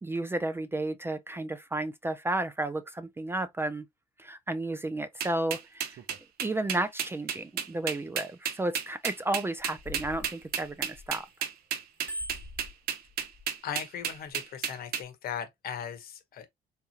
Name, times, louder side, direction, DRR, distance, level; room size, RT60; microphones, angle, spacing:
voice 1, 0.0-3.9 4.2-6.0 6.4-11.3, right 2 dB, 15° right, 0.3 m, -32 dB
sound 1, 5.2-15.0, right 8 dB, 65° right, 0.7 m, -32 dB
Bicycle bell, 9.5-11.4 11.8-13.4 14.1-14.3, equal, 10° left, 1.4 m, -42 dB
voice 2, 13.6-16.5, left 8 dB, 60° left, 1.0 m, -38 dB
3.6 x 2.9 x 2.7 m
cardioid pair, 110°, 17 cm